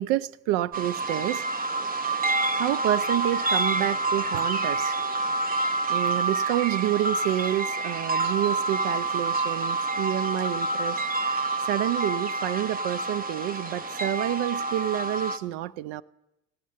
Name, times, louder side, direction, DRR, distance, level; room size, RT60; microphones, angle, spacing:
voice 1, 0.0-1.4 2.5-5.0 5.9-16.0, right 14 dB, 80° right, 0.6 m, -29 dB
sound 1, 0.7-15.4, right 3 dB, 20° right, 0.6 m, -28 dB
15.5 x 7.5 x 9.4 m
supercardioid pair, 125°, 49 cm